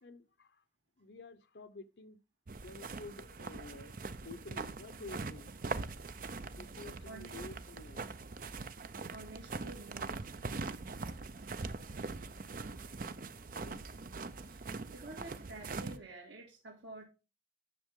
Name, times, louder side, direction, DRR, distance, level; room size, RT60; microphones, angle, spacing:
voice 1, 0.0-0.6 1.0-2.2 2.6-4.0 4.2-5.5 6.6-8.0 13.5-13.8, left 3 dB, 75° left, 0.8 m, -50 dB
sound 1, 2.5-16.0, right 3 dB, 50° right, 0.6 m, -42 dB
voice 2, 9.1-10.3 14.5-17.0, right 2 dB, 75° right, 2.5 m, -50 dB
10.5 x 6.5 x 3.7 m
head